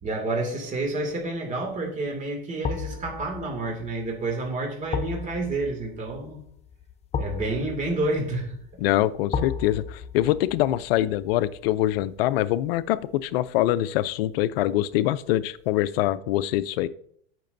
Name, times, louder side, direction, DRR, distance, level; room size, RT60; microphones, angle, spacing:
voice 1, 0.0-6.4 7.2-8.6, right 2 dB, 25° right, 1 dB, 2.3 m, -29 dB
sound 1, 0.9-1.2 2.6-13.6 14.0-14.1, left 6 dB, 20° left, 0.6 m, -36 dB
voice 2, 8.8-16.9, left 14 dB, 70° left, 16 dB, 0.6 m, -24 dB
16.0 x 6.0 x 2.6 m, 0.64 s
supercardioid pair, 120°, 31 cm